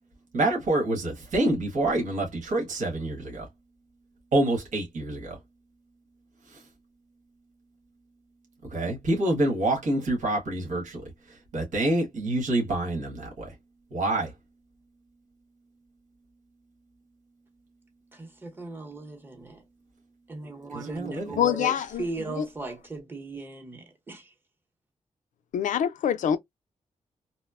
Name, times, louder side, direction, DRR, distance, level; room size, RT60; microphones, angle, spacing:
voice 1, 0.3-3.5 4.3-5.4 6.5-6.6 8.7-11.0 11.3-13.5 13.9-14.3 20.7-21.4, right 1 dB, 85° right, 1.3 m, -27 dB
voice 2, 18.1-19.6 20.3-24.3, right 3 dB, 15° right, 0.8 m, -38 dB
voice 3, 21.4-22.5 25.5-26.4, left 9 dB, 85° left, 0.4 m, -26 dB
2.9 x 2.0 x 2.3 m
wide cardioid pair, 165°, 13 cm